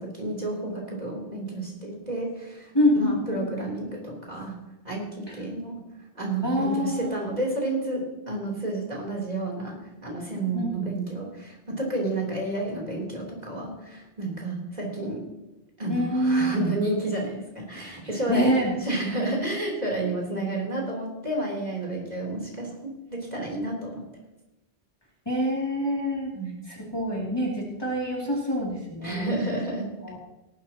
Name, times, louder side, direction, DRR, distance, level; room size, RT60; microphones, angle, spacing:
voice 1, 0.0-4.6 4.8-5.8 6.2-15.3 15.8-24.1 26.3-26.5 29.0-30.2, right 2 dB, 40° right, -2 dB, 3.5 m, -31 dB
voice 2, 2.7-3.4 5.3-5.4 6.4-7.1 10.5-10.9 15.9-16.6 18.3-18.8 25.3-26.3 26.7-29.5 30.0-30.2, equal, 25° left, -4 dB, 2.7 m, -26 dB
18.0 x 12.0 x 2.9 m, 0.98 s
omnidirectional pair, 1.1 m